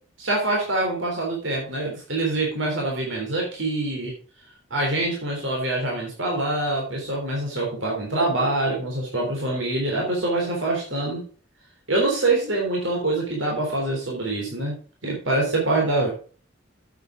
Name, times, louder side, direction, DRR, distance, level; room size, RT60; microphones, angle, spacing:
voice 1, 0.2-4.1 4.7-11.3 11.9-14.8 15.0-16.1, right 2 dB, 85° right, -1 dB, 3.4 m, -25 dB
8.6 x 8.3 x 5.0 m, 0.40 s
head